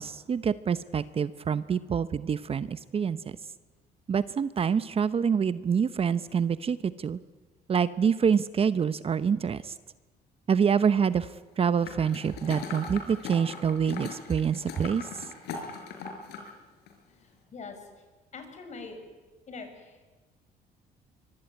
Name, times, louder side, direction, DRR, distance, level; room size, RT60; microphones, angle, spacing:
voice 1, 0.0-3.2 4.1-7.2 7.7-9.7 10.5-11.3 11.6-15.1, right 7 dB, 35° right, 14 dB, 0.8 m, -26 dB
sound 1, 11.8-16.5 16.9-17.0, left 5 dB, 80° left, 5.4 m, -40 dB
voice 2, 17.2-17.9 18.3-19.0 19.5-20.1, left 4 dB, 45° left, 6 dB, 6.4 m, -43 dB
24.0 x 23.5 x 9.8 m, 1.2 s
cardioid pair, 110°, 17 cm